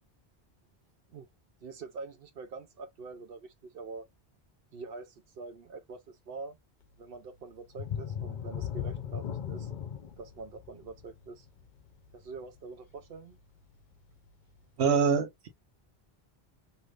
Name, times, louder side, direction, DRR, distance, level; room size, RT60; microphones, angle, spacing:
voice 1, 1.6-4.1 4.7-6.6 7.0-9.7 10.2-11.5 12.1-13.4, right 4 dB, 65° right, 0.8 m, -45 dB
sound 1, 7.7-13.2 13.6-13.8 14.3-14.4, left 9 dB, 55° left, 0.7 m, -38 dB
voice 2, 14.8-15.5, right 6 dB, 90° right, 1.1 m, -25 dB
3.2 x 2.7 x 2.4 m
omnidirectional pair, 1.1 m